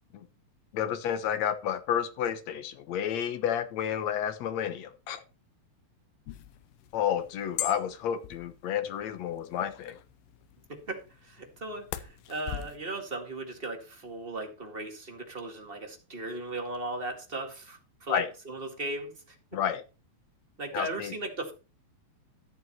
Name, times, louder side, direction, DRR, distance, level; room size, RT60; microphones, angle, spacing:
voice 1, 0.7-5.2 6.9-10.0 18.1-18.3 19.5-19.8 20.7-21.1, left 9 dB, 65° left, 11 dB, 2.0 m, -30 dB
sound 1, 6.3-12.8, left 13 dB, 80° left, 2.5 m, -42 dB
voice 2, 10.7-19.1 20.6-21.5, right 2 dB, 25° right, 4 dB, 1.3 m, -37 dB
14.0 x 7.1 x 4.5 m, 0.32 s
omnidirectional pair, 4.1 m